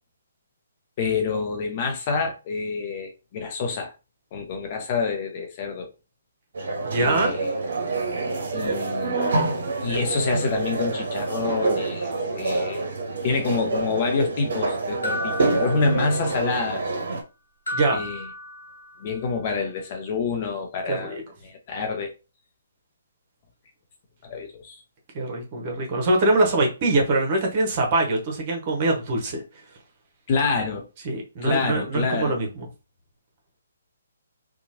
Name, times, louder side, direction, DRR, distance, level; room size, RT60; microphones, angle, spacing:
voice 1, 1.0-3.9 4.3-5.9 7.0-7.6 8.5-9.2 9.8-12.8 13.2-16.8 17.9-18.2 19.0-22.1 24.2-24.8 30.3-30.9 31.4-32.4, left 4 dB, 40° left, 0.8 m, -27 dB
sound 1, 6.5-17.2, right 3 dB, 65° right, 0.7 m, -27 dB
voice 2, 6.8-7.3 17.7-18.0 20.9-21.2 25.1-29.4 31.0-32.7, right 2 dB, 40° right, 1.0 m, -23 dB
sound 2, 15.0-16.5 17.7-19.1, left 1 dB, 85° left, 1.0 m, -33 dB
2.9 x 2.3 x 2.7 m
figure-of-eight pair, 140°, 0 cm